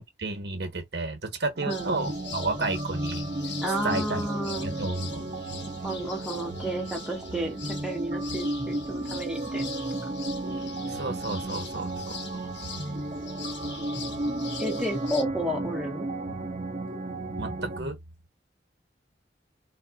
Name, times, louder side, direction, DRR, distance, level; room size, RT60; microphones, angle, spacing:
voice 1, 0.0-3.3 3.8-4.2 4.6-5.3 10.9-12.2 17.4-18.0, right 3 dB, 70° right, 1.0 m, -32 dB
sound 1, 1.6-17.8, right 2 dB, 40° right, 0.6 m, -33 dB
sound 2, 1.7-15.2, left 6 dB, 85° left, 1.2 m, -43 dB
voice 2, 3.6-4.7 5.8-9.7 14.2-16.1, right 1 dB, 5° right, 0.9 m, -32 dB
3.6 x 2.4 x 2.3 m
head